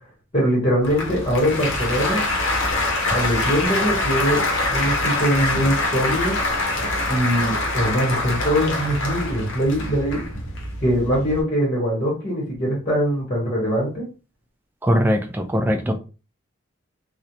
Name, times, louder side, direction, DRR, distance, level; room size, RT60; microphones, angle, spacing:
voice 1, 0.3-2.3 3.1-4.4 4.7-6.4 7.1-10.2 10.8-14.1, equal, 25° left, -4 dB, 0.9 m, -22 dB
Applause, 0.8-11.4, left 2 dB, 65° left, 0.7 m, -24 dB
voice 2, 14.8-16.0, equal, 10° right, 5 dB, 0.3 m, -20 dB
2.4 x 2.0 x 2.8 m, 0.33 s
head